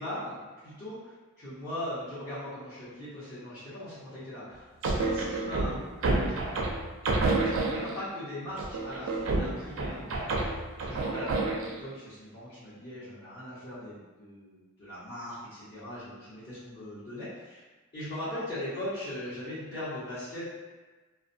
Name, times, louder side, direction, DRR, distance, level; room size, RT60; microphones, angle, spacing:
voice 1, 0.0-6.5 7.1-17.6 17.9-20.5, left 1 dB, 50° left, -15 dB, 1.2 m, -40 dB
sound 1, 4.8-8.1 8.6-11.8, right 2 dB, 65° right, 0.4 m, -29 dB
2.5 x 2.2 x 2.6 m, 1.3 s
head